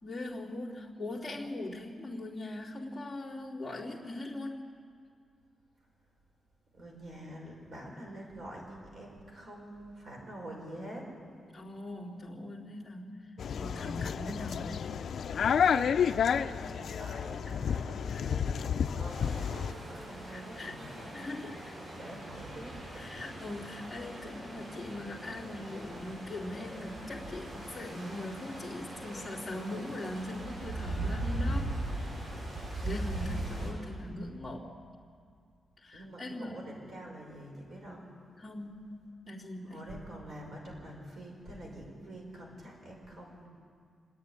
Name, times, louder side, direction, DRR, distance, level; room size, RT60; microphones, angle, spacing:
voice 1, 0.0-4.6 11.5-13.2 13.5-14.8 20.3-20.7 21.1-21.6 23.0-32.0 32.8-34.7 35.8-36.7 38.4-39.0 39.3-39.8, left 1 dB, 5° left, -7 dB, 2.9 m, -40 dB
voice 2, 6.7-11.1 15.6-21.5 22.0-23.1 35.9-38.1 39.6-43.5, right 1 dB, 50° right, -1 dB, 5.3 m, -46 dB
sound 1, 13.4-19.7, left 7 dB, 60° left, 0.4 m, -30 dB
sound 2, 19.1-33.7, right 1 dB, 70° right, 6.8 m, -39 dB
27.5 x 9.7 x 9.8 m, 2.3 s
wide cardioid pair, 160°, 0 cm